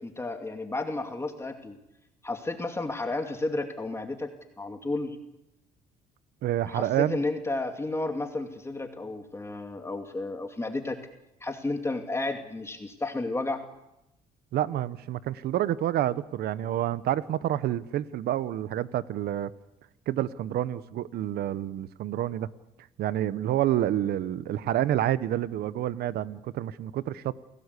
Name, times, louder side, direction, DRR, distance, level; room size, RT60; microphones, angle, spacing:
voice 1, 0.0-1.8 2.2-4.3 4.6-5.2 6.6-11.0 11.4-13.6, left 2 dB, 15° left, 2.5 m, -32 dB
voice 2, 6.4-7.2 14.5-19.5 20.1-22.5 23.0-27.3, right 12 dB, 70° right, 1.1 m, -28 dB
28.5 x 18.0 x 8.3 m
cardioid pair, 110°, 17 cm